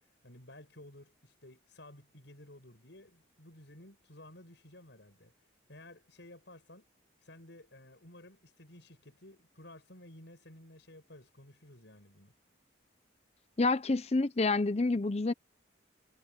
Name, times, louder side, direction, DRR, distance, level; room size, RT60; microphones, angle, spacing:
voice 1, 0.0-5.3 5.7-6.9 7.2-12.3, left 1 dB, 65° left, 6.3 m, -54 dB
voice 2, 13.6-15.3, left 3 dB, 30° left, 0.6 m, -28 dB
head